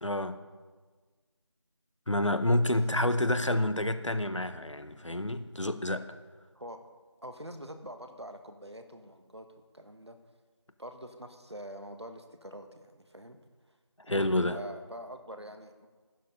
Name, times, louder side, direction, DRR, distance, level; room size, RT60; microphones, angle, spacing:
voice 1, 0.0-0.4 2.1-6.2 14.1-14.6, left 1 dB, 85° left, 11 dB, 1.1 m, -28 dB
voice 2, 7.2-9.5 9.7-10.2 10.8-13.4 14.0-15.9, equal, 65° right, 6 dB, 1.4 m, -45 dB
12.0 x 9.7 x 5.3 m, 1.4 s
figure-of-eight pair, 180°, 15 cm